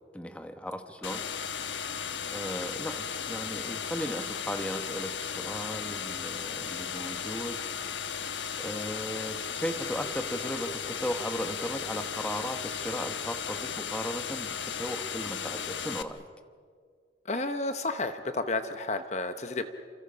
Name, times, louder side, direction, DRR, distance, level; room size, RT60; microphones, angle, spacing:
voice 1, 0.1-1.2 2.3-7.6 8.6-16.2, equal, 5° left, 7 dB, 1.2 m, -36 dB
sound 1, 1.0-16.0, left 7 dB, 90° left, 1.2 m, -35 dB
voice 2, 17.3-19.7, left 2 dB, 40° left, 8 dB, 1.0 m, -31 dB
29.5 x 28.0 x 5.7 m, 2.1 s
head